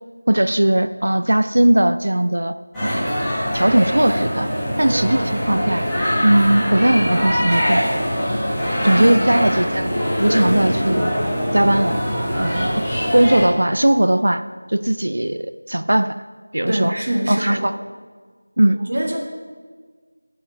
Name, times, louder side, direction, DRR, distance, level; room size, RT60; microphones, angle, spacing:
voice 1, 0.3-2.5 2.8-3.2 3.5-4.5 4.8-5.9 6.2-8.0 8.8-11.1 11.5-12.0 12.4-12.8 13.1-14.4 14.7-16.1 16.5-16.9 17.3-17.7 18.6-18.8, right 1 dB, 60° right, 12 dB, 0.4 m, -18 dB
sound 1, 2.7-13.5, equal, 5° left, 1.3 m, -22 dB
sound 2, 4.6-4.9 6.2-11.5, left 1 dB, 25° left, 1.2 m, -33 dB
voice 2, 16.7-17.7 18.9-19.2, right 1 dB, 40° right, -1 dB, 1.8 m, -23 dB
8.6 x 4.9 x 7.5 m, 1.5 s
figure-of-eight pair, 170°, 0 cm